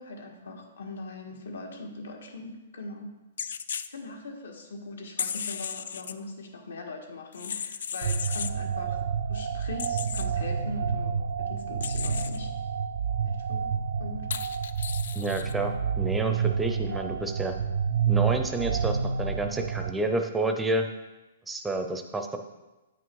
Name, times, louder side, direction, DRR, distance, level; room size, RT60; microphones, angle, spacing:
voice 1, 0.0-3.1 3.9-11.2 11.5-12.5 13.2-13.7 14.0-14.3, left 2 dB, 80° left, 3 dB, 1.6 m, -41 dB
sound 1, 3.4-3.9 5.2-6.1 7.3-8.5 9.8-10.3 11.8-12.4 14.3-15.5, left 7 dB, 65° left, 0.4 m, -35 dB
sound 2, 8.0-19.9, right 6 dB, 65° right, 0.5 m, -29 dB
voice 2, 15.1-17.5 18.1-20.9 21.5-22.4, right 2 dB, 5° right, 5 dB, 0.5 m, -29 dB
8.8 x 6.1 x 4.7 m, 1.1 s
hypercardioid pair, 175°, 0 cm